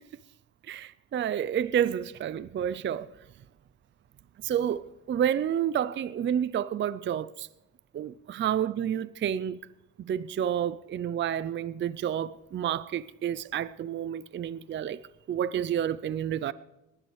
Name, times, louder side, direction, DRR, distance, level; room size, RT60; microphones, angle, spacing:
voice 1, 0.7-3.1 4.4-7.5 7.9-9.6 10.0-15.0 15.3-16.5, right 9 dB, 40° right, 0.4 m, -29 dB
20.0 x 11.0 x 3.2 m
cardioid pair, 105°, 31 cm